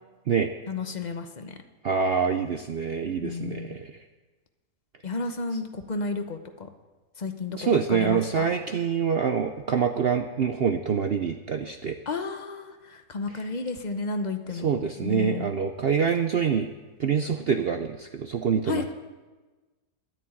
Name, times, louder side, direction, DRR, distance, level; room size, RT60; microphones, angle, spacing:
voice 1, 0.7-1.6 3.2-3.7 5.0-6.7 7.2-8.6 12.1-14.7 15.0-15.5 18.7-18.9, left 4 dB, 35° left, 7 dB, 0.8 m, -32 dB
voice 2, 1.8-3.9 7.6-12.0 14.6-16.7 17.0-18.9, right 6 dB, 70° right, 6 dB, 0.5 m, -25 dB
11.0 x 9.7 x 8.7 m, 1.3 s
omnidirectional pair, 1.8 m